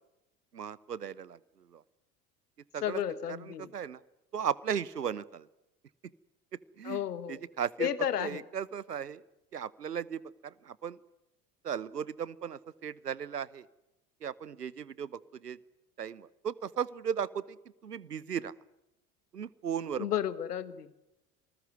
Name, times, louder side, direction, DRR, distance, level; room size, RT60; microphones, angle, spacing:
voice 1, 0.5-1.8 2.7-3.0 3.3-4.0 4.3-5.5 6.8-7.0 7.3-7.9 8.2-9.2 9.5-11.0 11.6-13.7 14.2-15.6 16.0-17.6 17.8-18.5 19.3-20.1, right 8 dB, 90° right, 22 dB, 1.0 m, -36 dB
voice 2, 2.8-3.7 6.8-7.4 7.8-8.4 20.0-20.9, left 9 dB, 80° left, 15 dB, 1.7 m, -32 dB
27.5 x 20.0 x 9.5 m, 0.91 s
figure-of-eight pair, 70°, 46 cm